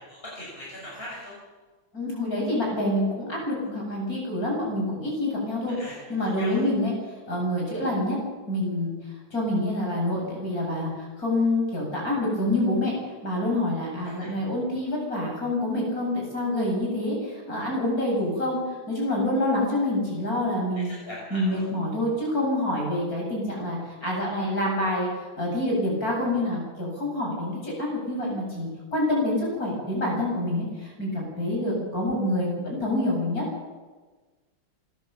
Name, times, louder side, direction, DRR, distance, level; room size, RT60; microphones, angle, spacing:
voice 1, 0.1-1.3 5.6-6.0 6.2-6.6 14.0-14.3 20.8-21.6, left 1 dB, 25° left, -5 dB, 6.3 m, -40 dB
voice 2, 1.9-5.8 6.1-6.9 7.3-8.2 8.5-13.0 13.2-20.9 21.3-33.4, left 1 dB, 45° left, -2 dB, 8.2 m, -27 dB
29.0 x 13.5 x 7.5 m, 1.3 s
omnidirectional pair, 2.2 m